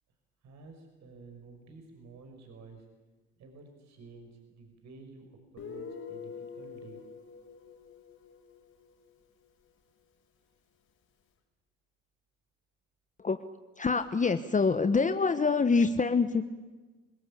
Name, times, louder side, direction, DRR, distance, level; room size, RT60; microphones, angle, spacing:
voice 1, 0.4-2.9 3.4-7.0, right 3 dB, 55° right, 4 dB, 5.5 m, -51 dB
Guitar, 5.6-9.1, left 6 dB, 45° left, 5.9 m, -45 dB
voice 2, 13.8-16.4, left 4 dB, 25° left, 9 dB, 1.3 m, -25 dB
27.5 x 20.5 x 8.6 m, 1.3 s
hypercardioid pair, 60°, 33 cm